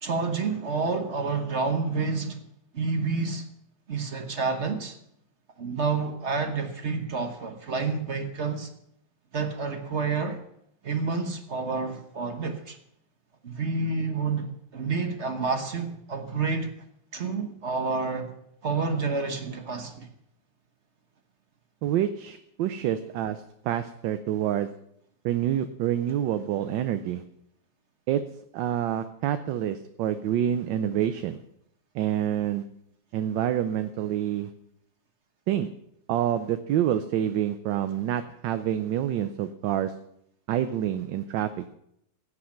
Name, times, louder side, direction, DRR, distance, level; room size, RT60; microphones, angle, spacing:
voice 1, 0.0-2.4 2.7-3.4 3.9-5.0 5.6-8.7 9.3-10.4 10.8-12.8 13.4-16.7 17.1-18.3 18.6-20.1, right 4 dB, 40° right, 1.2 m, -29 dB
voice 2, 21.8-24.7 25.2-27.2 28.1-28.2 28.5-31.4 31.9-32.6 33.1-34.5 35.5-35.7 36.1-39.9 40.5-41.7, right 11 dB, 75° right, 1.3 m, -27 dB
16.0 x 8.5 x 5.8 m
omnidirectional pair, 2.1 m